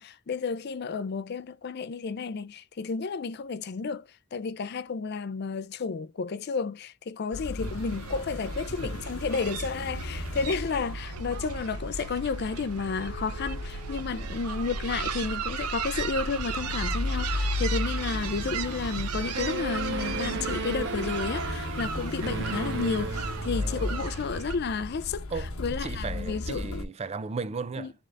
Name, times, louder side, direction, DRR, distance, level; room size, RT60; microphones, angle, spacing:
voice 1, 0.0-25.3 25.6-26.7 27.8-27.9, left 5 dB, 45° left, 0.4 m, -32 dB
sound 1, 7.3-26.8, left 2 dB, 65° left, 1.0 m, -36 dB
sound 2, 7.6-24.6, right 6 dB, 85° right, 0.6 m, -36 dB
voice 2, 14.1-14.4 23.5-24.1 25.3-25.5 25.8-27.9, right 4 dB, 30° right, 0.3 m, -36 dB
sound 3, 19.3-24.0, right 3 dB, 55° right, 0.9 m, -35 dB
3.7 x 3.5 x 3.3 m
head